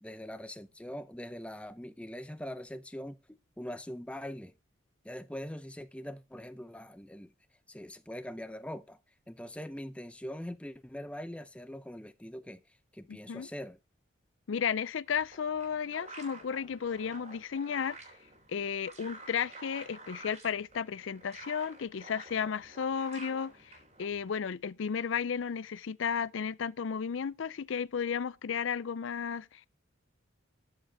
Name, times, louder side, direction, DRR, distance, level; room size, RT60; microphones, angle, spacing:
voice 1, 0.0-4.5 5.0-7.3 7.7-9.0 9.3-12.6 12.9-13.8, equal, 5° left, 0.6 m, -42 dB
voice 2, 13.1-13.5 14.5-18.0 18.5-29.7, left 7 dB, 70° left, 0.4 m, -34 dB
sound 1, 15.1-24.3, right 2 dB, 35° right, 3.5 m, -50 dB
13.5 x 6.5 x 4.7 m
head